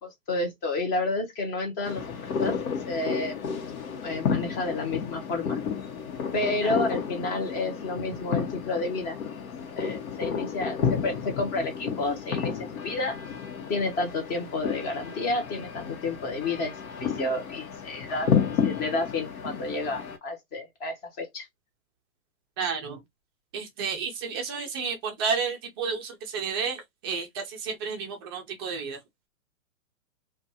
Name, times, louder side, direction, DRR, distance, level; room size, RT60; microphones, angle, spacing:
voice 1, 0.0-2.6 2.9-3.4 4.0-5.6 6.3-9.2 9.8-13.2 13.7-18.3 18.6-21.5, left 2 dB, 20° left, 0.8 m, -30 dB
sound 1, 1.8-20.2, left 6 dB, 80° left, 1.0 m, -31 dB
voice 2, 22.6-23.0 23.5-29.0, right 5 dB, 20° right, 0.4 m, -31 dB
2.5 x 2.3 x 2.7 m
hypercardioid pair, 140°, 41 cm